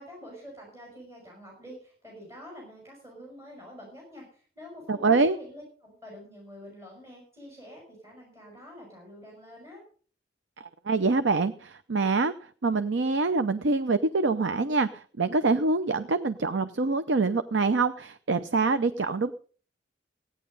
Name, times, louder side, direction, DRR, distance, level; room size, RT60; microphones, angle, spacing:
voice 1, 0.0-9.8, equal, 15° right, -2 dB, 6.1 m, -47 dB
voice 2, 4.9-5.4 10.6-12.3 12.6-19.3, right 3 dB, 90° right, 11 dB, 0.7 m, -25 dB
16.0 x 9.7 x 5.4 m, 0.43 s
head